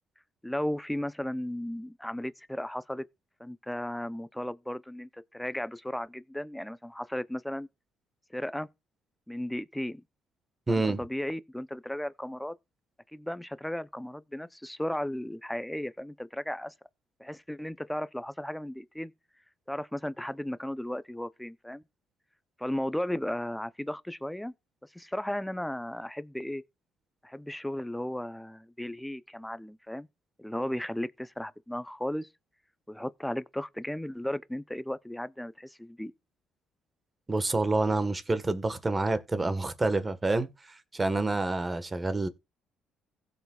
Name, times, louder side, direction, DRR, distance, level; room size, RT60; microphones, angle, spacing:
voice 1, 0.4-3.1 3.4-7.7 8.3-8.7 9.3-10.0 10.7-12.5 13.1-16.7 17.2-19.1 19.7-21.8 22.6-24.5 24.9-26.6 27.2-30.1 30.4-32.3 32.9-36.1, left 1 dB, 5° left, 0.6 m, -35 dB
voice 2, 10.7-11.0 37.3-42.3, right 2 dB, 20° right, 1.4 m, -28 dB
16.0 x 7.0 x 2.4 m
supercardioid pair, 80°, 0 cm